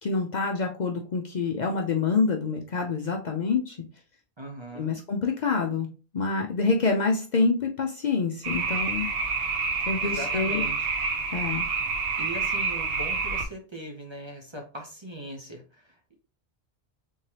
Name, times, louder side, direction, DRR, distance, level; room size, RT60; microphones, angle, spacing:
voice 1, 0.0-3.8 4.8-5.9 6.1-9.1 9.9-10.7 11.3-11.7, left 4 dB, 55° left, 2 dB, 0.6 m, -26 dB
voice 2, 4.4-5.0 10.0-10.9 12.2-16.1, equal, 30° right, 1 dB, 0.6 m, -40 dB
sound 1, 8.4-13.4, right 4 dB, 70° right, 0.9 m, -28 dB
3.6 x 3.2 x 2.8 m, 0.34 s
omnidirectional pair, 1.1 m